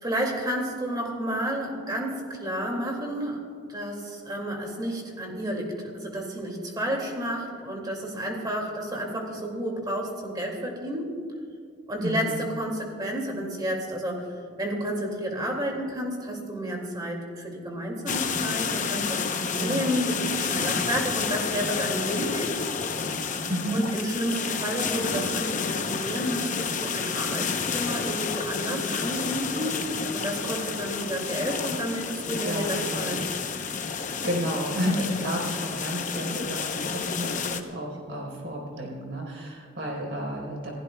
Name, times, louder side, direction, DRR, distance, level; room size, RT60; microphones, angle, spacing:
voice 1, 0.0-3.4 3.7-11.2 11.9-14.3 14.6-22.5 23.7-33.2, equal, 20° right, 0 dB, 2.3 m, -31 dB
voice 2, 12.0-12.3 19.6-20.1 23.5-23.8 32.4-33.2 34.0-40.7, equal, 60° right, -1 dB, 4.2 m, -31 dB
sound 1, 18.1-37.6, left 5 dB, 40° left, 0.8 m, -30 dB
28.0 x 15.5 x 2.3 m, 2.2 s
head